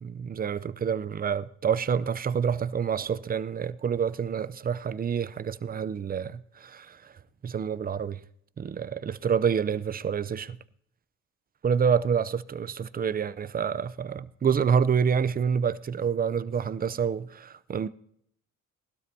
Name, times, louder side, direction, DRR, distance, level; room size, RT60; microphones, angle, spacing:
voice 1, 0.0-7.1 7.4-8.2 8.6-10.6 11.6-17.9, right 7 dB, 30° right, 0.5 m, -27 dB
19.5 x 12.5 x 2.8 m
cardioid pair, 90°, 30 cm